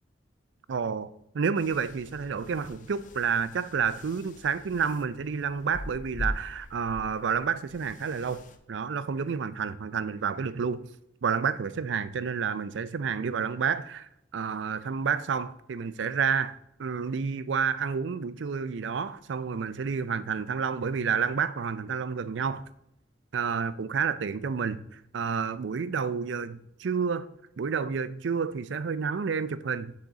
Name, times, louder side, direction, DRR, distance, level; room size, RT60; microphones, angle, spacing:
voice 1, 0.7-8.4 8.7-10.9 11.2-22.6 23.3-27.3 27.6-29.9, right 6 dB, 70° right, 0.4 m, -30 dB
sound 1, 1.5-8.6, left 1 dB, 40° left, 0.6 m, -42 dB
11.5 x 3.9 x 4.0 m
head